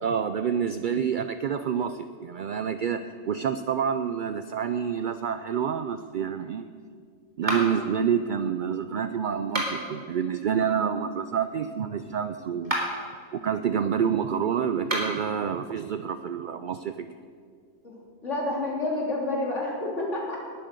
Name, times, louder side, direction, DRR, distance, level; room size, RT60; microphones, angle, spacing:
voice 1, 0.0-6.7 7.4-12.7 13.3-17.1, right 7 dB, 65° right, 11 dB, 0.5 m, -28 dB
sound 1, 7.4-7.9 9.4-10.0 12.5-13.1 14.8-15.3, right 1 dB, 20° right, 4.1 m, -30 dB
voice 2, 18.2-20.4, left 2 dB, 65° left, -3 dB, 3.5 m, -29 dB
20.5 x 7.6 x 6.7 m, 2.3 s
omnidirectional pair, 1.3 m